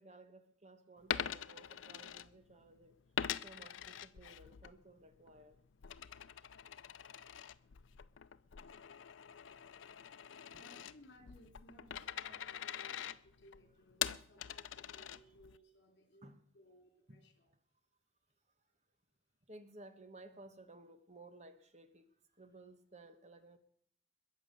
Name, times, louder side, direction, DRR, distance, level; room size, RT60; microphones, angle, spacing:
voice 1, 0.0-3.0 3.4-5.6 10.3-10.6 14.9-15.8 16.2-16.4 17.1-17.2 19.5-23.6, right 2 dB, 35° right, 10 dB, 1.2 m, -57 dB
Coin (dropping), 1.0-2.7 3.2-4.7 5.1-15.6, left 9 dB, 90° left, 0.5 m, -44 dB
voice 2, 10.5-17.5, equal, 65° left, 6 dB, 3.3 m, -62 dB
21.5 x 7.3 x 6.8 m, 0.63 s
head